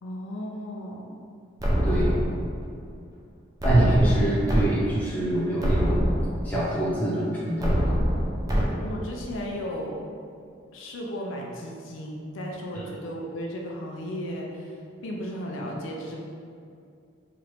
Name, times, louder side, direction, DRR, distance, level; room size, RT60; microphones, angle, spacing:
voice 1, 0.0-1.2 8.8-10.0 10.7-16.2, equal, 75° left, -1 dB, 0.4 m, -35 dB
sound 1, 1.6-2.6 3.6-4.6 5.1-5.2 5.6-6.6 7.6-8.6, equal, 20° right, 0.4 m, -24 dB
voice 2, 1.8-2.2 3.6-6.0 6.4-7.8, right 1 dB, 10° left, -9 dB, 0.7 m, -24 dB
3.1 x 2.4 x 3.1 m, 2.4 s
head